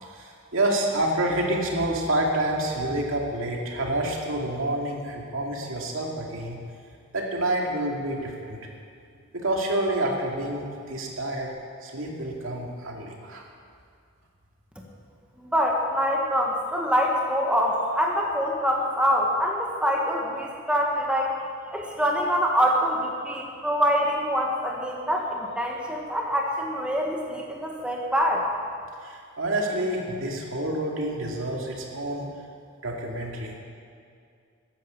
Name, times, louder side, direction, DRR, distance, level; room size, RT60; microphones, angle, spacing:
voice 1, 0.0-6.6 7.1-8.7 9.3-11.5 11.8-13.4 29.0-32.3 32.8-33.5, right 1 dB, 75° right, 0 dB, 2.4 m, -28 dB
voice 2, 15.5-21.4 21.7-28.5, equal, 5° right, -1 dB, 1.4 m, -25 dB
14.5 x 10.5 x 7.1 m, 2.3 s
head